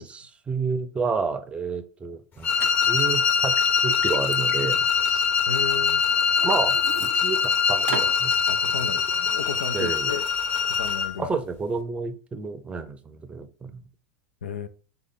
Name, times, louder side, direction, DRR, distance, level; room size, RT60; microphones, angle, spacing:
voice 1, 0.0-2.5 2.8-4.8 5.1-5.2 6.4-8.3 8.8-9.0 9.7-10.1 11.2-13.8, right 4 dB, 20° right, 0.6 m, -30 dB
sound 1, 2.4-11.2, left 6 dB, 35° left, 1.0 m, -23 dB
Liquid, 2.6-2.7 3.2-5.6 6.1-7.5 7.9-8.2, right 6 dB, 80° right, 0.6 m, -36 dB
voice 2, 5.5-6.0 8.5-10.3 10.6-11.3 14.4-14.7, left 6 dB, 80° left, 0.4 m, -34 dB
3.6 x 3.5 x 3.7 m
hypercardioid pair, 90°, 6 cm